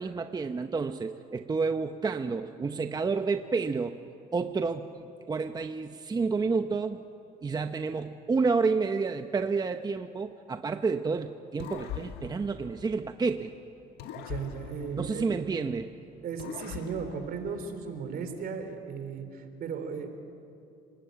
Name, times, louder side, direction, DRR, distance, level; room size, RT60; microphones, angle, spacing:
voice 1, 0.0-4.0 4.3-7.0 7.4-13.5 15.0-15.9, right 4 dB, 25° right, 8 dB, 0.9 m, -30 dB
sound 1, 11.6-13.5 14.0-15.9 16.4-18.1, left 9 dB, 85° left, 1.7 m, -43 dB
voice 2, 14.2-15.5 16.2-20.1, right 6 dB, 60° right, 8 dB, 3.6 m, -36 dB
30.0 x 19.5 x 9.2 m, 2.7 s
cardioid pair, 110°, 17 cm